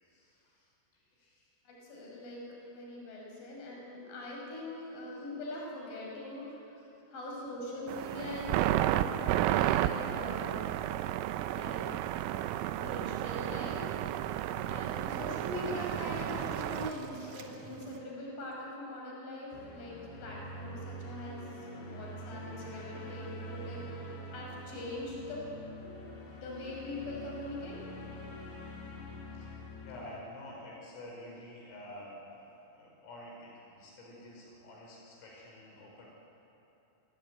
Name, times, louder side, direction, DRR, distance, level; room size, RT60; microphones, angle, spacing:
voice 1, 0.0-1.5 5.1-5.2 6.8-6.9 14.9-15.4 29.3-36.1, left 1 dB, 80° left, -2 dB, 7.8 m, -50 dB
voice 2, 1.7-6.8 7.1-10.7 11.5-12.0 12.8-13.9 14.7-25.5 26.4-27.8, left 1 dB, 45° left, -2 dB, 7.7 m, -42 dB
sound 1, 7.9-16.9, right 13 dB, 85° right, 3.4 m, -32 dB
Waves surf, 12.2-18.0, right 5 dB, 65° right, 1.9 m, -48 dB
sound 2, 19.5-30.2, equal, 65° left, 6.2 m, -45 dB
28.5 x 21.0 x 9.3 m, 3.0 s
omnidirectional pair, 5.9 m